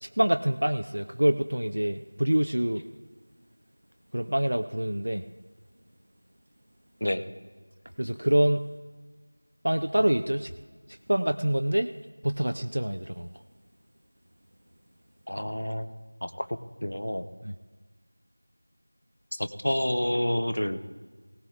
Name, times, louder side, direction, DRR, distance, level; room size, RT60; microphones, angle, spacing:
voice 1, 0.0-2.9 4.1-5.2 8.0-8.7 9.6-10.5 11.1-11.9 12.2-13.3 17.4-17.5, right 1 dB, 45° right, 7 dB, 0.4 m, -26 dB
voice 2, 15.3-15.9 16.2-16.5 16.8-17.3 19.3-20.9, equal, 50° left, 9 dB, 0.7 m, -29 dB
18.0 x 15.5 x 2.4 m, 1.4 s
figure-of-eight pair, 180°, 0 cm